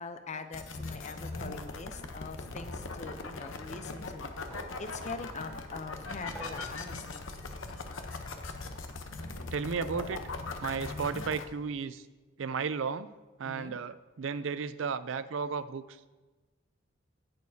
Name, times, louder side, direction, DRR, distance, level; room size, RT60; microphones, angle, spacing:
voice 1, 0.0-4.3 4.8-7.3 13.4-13.8, left 4 dB, 40° left, 10 dB, 0.6 m, -43 dB
sound 1, 0.5-11.4, left 3 dB, 80° left, 0.9 m, -40 dB
sound 2, 4.5-4.8 5.2-5.3 6.3-6.8 7.9-8.1 9.8-10.2 11.3-11.5 12.7-12.9, equal, 10° left, 3.3 m, -48 dB
voice 2, 9.5-10.3 10.6-12.1 12.4-13.1 13.4-16.1, right 5 dB, 70° right, 14 dB, 0.5 m, -34 dB
17.5 x 6.6 x 2.8 m, 1.2 s
head